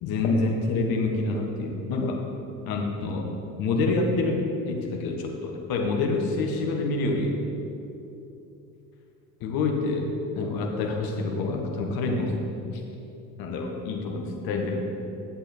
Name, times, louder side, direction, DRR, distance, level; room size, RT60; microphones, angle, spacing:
voice 1, 0.0-2.2 2.7-3.3 3.6-7.3 9.4-12.3 12.7-12.8 13.4-14.8, left 3 dB, 60° left, 2 dB, 1.3 m, -27 dB
9.1 x 7.8 x 4.3 m, 2.8 s
hypercardioid pair, 70°, 40 cm